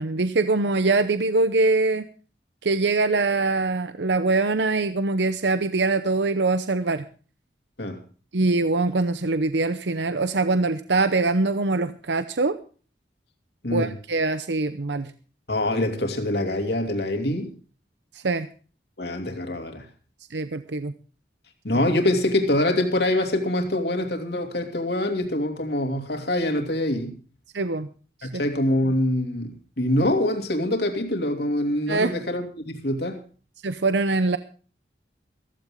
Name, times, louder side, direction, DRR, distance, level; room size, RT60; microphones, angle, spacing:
voice 1, 0.0-2.1 2.6-7.0 8.3-12.6 13.7-15.1 18.1-18.5 20.3-20.9 21.7-21.8 27.5-27.9 28.2-28.4 31.9-32.2 33.6-34.4, right 3 dB, 80° right, 11 dB, 0.8 m, -23 dB
voice 2, 15.5-17.5 19.0-19.8 21.6-27.1 28.2-29.5 29.8-33.2, left 1 dB, 65° left, 4 dB, 2.9 m, -24 dB
15.5 x 15.0 x 3.8 m, 0.38 s
head